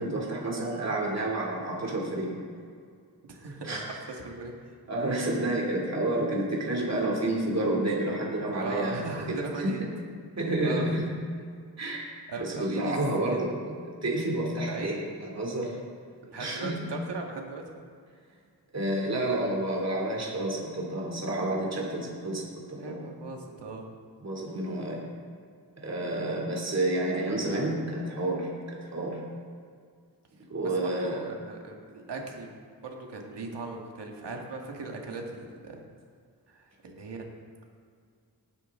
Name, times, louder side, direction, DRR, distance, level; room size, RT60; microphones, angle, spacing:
voice 1, 0.0-2.4 3.6-4.0 4.9-9.7 10.4-11.1 11.8-12.1 12.4-13.8 14.0-15.8 16.4-16.9 18.7-23.0 24.2-25.0 25.8-29.2 30.5-31.2, right 1 dB, 40° right, -3 dB, 2.7 m, -30 dB
voice 2, 3.3-4.5 8.6-9.8 10.6-11.0 12.3-12.9 13.3-13.5 14.7-14.9 16.2-17.6 22.8-23.8 30.6-32.5 32.8-35.8 36.5-37.2, right 3 dB, 85° right, 1 dB, 1.8 m, -38 dB
19.0 x 9.5 x 3.7 m, 2.2 s
wide cardioid pair, 95°, 40 cm